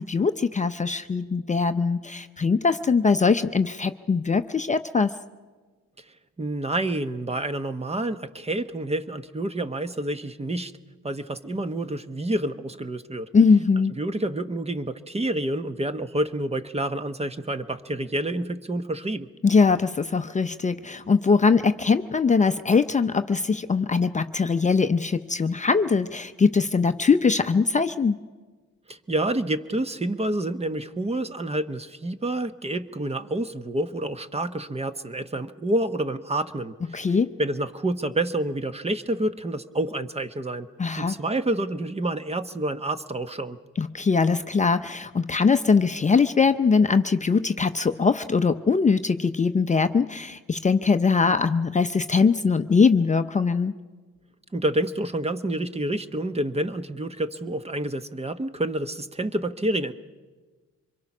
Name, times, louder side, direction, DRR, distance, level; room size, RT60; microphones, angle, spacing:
voice 1, 0.0-5.1 13.3-13.9 19.4-28.2 36.9-37.3 40.8-41.1 43.8-53.7, left 5 dB, 25° left, 9 dB, 0.6 m, -21 dB
voice 2, 6.4-10.7 11.0-13.3 14.0-19.3 28.9-37.1 37.4-40.7 41.0-43.6 54.5-59.9, right 1 dB, 20° right, 11 dB, 1.0 m, -28 dB
25.0 x 22.5 x 6.1 m, 1.3 s
cardioid pair, 90°, 30 cm